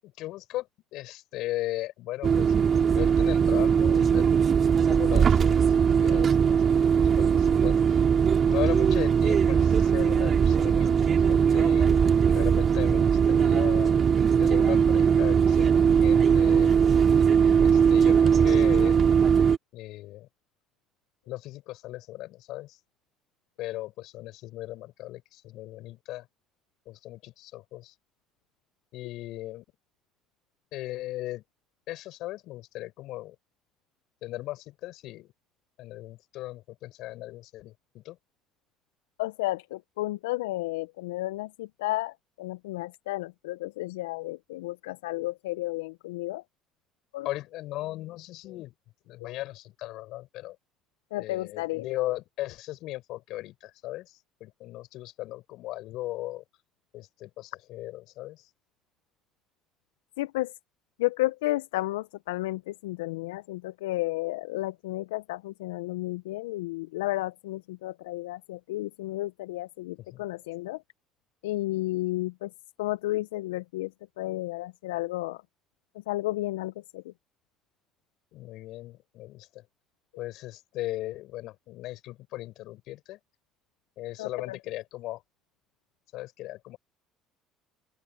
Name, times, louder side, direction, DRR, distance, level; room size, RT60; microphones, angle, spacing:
voice 1, 0.0-4.4 4.9-6.9 7.2-8.0 8.5-13.9 14.4-16.8 17.6-19.0 19.7-20.3 21.3-22.8 23.6-26.3 26.9-27.9 28.9-29.6 30.7-31.4 31.9-33.3 34.2-35.3 35.8-38.2 47.2-48.7 49.0-50.6 51.2-56.4 56.9-58.5 70.0-70.2 78.3-79.6 80.2-83.2 84.0-85.2 86.1-86.8, left 16 dB, 65° left, 7.8 m, -37 dB
sound 1, 2.2-19.6, right 7 dB, 40° right, 3.1 m, -20 dB
voice 2, 39.2-46.4 47.1-47.3 51.1-52.0 60.2-60.5 61.0-70.8 71.4-72.5 72.8-73.9 74.2-75.4 76.1-77.0 84.2-84.6, left 18 dB, 80° left, 0.9 m, -32 dB
open air
hypercardioid pair, 60°, 0 cm